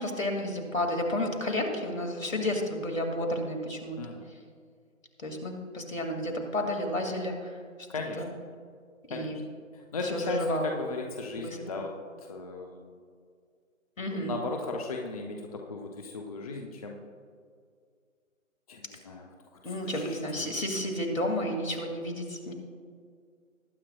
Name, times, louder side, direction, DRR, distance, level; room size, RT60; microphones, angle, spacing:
voice 1, 0.0-4.0 5.2-7.5 8.2-8.3 9.1-9.4 10.1-10.8 11.4-11.6 14.0-14.3 19.6-22.5, left 1 dB, 70° left, 3 dB, 2.4 m, -31 dB
voice 2, 7.9-8.2 9.1-9.4 9.7-13.0 14.1-17.0 18.7-19.3 19.6-20.5, left 3 dB, 25° left, 2 dB, 0.7 m, -37 dB
20.0 x 9.6 x 2.3 m, 2.1 s
figure-of-eight pair, 145°, 41 cm